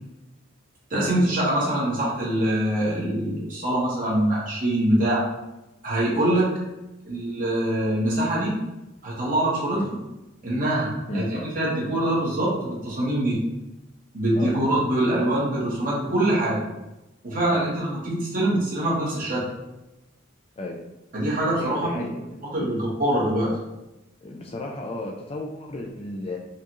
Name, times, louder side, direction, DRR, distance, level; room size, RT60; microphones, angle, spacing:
voice 1, 0.9-5.2 5.8-6.5 7.1-8.5 9.0-9.8 10.4-10.9 11.1-13.4 14.1-16.6 17.2-19.4 21.1-22.0 22.5-23.5, right 1 dB, 45° right, -6 dB, 1.4 m, -24 dB
voice 2, 21.6-22.7 24.2-26.4, left 1 dB, 30° left, 1 dB, 0.3 m, -33 dB
4.6 x 2.5 x 2.9 m, 0.96 s
head